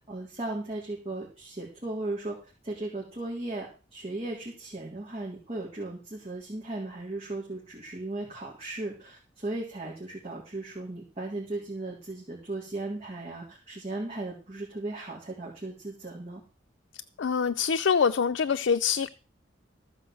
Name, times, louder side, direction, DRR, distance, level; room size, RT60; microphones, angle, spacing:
voice 1, 0.1-2.4 2.6-16.4, right 2 dB, 35° right, 3.5 m, -36 dB
voice 2, 17.2-19.1, left 6 dB, 85° left, 0.5 m, -25 dB
14.5 x 5.3 x 7.8 m
head